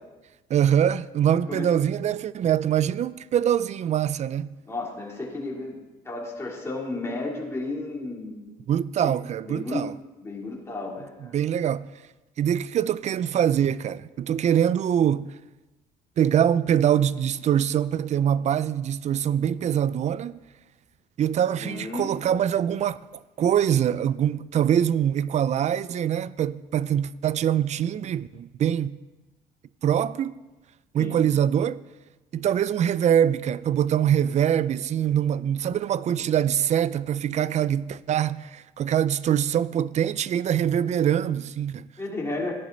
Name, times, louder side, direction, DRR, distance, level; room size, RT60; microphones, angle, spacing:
voice 1, 0.5-4.5 8.7-9.9 11.3-11.9 12.4-15.3 16.2-20.4 21.2-23.0 23.4-29.0 29.8-30.4 30.9-31.8 32.3-41.9, right 9 dB, 45° right, 0.4 m, -23 dB
voice 2, 4.6-5.8 6.0-8.5 9.0-9.1 9.4-9.8 10.2-11.4 21.6-22.1 31.0-31.2 42.0-42.5, left 2 dB, 15° left, 3.3 m, -33 dB
13.5 x 10.5 x 4.0 m
cardioid pair, 110°, 17 cm